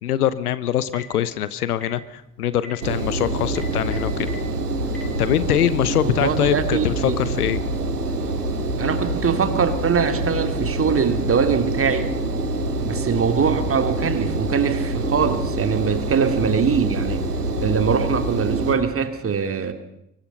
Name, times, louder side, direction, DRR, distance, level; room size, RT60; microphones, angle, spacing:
voice 1, 0.0-4.3 5.2-7.6, left 11 dB, 75° left, 17 dB, 1.0 m, -23 dB
Telephone, 0.7-1.1 1.7-1.9 2.5-2.7 3.4-4.4 4.9-5.0, right 1 dB, 5° left, 6.9 m, -40 dB
Engine, 2.8-18.7, right 2 dB, 85° right, 2.0 m, -26 dB
voice 2, 6.0-7.2 8.8-12.1 12.8-17.2 17.6-19.7, right 6 dB, 30° right, 9 dB, 2.5 m, -22 dB
24.0 x 20.0 x 5.5 m, 0.80 s
figure-of-eight pair, 60°, 46 cm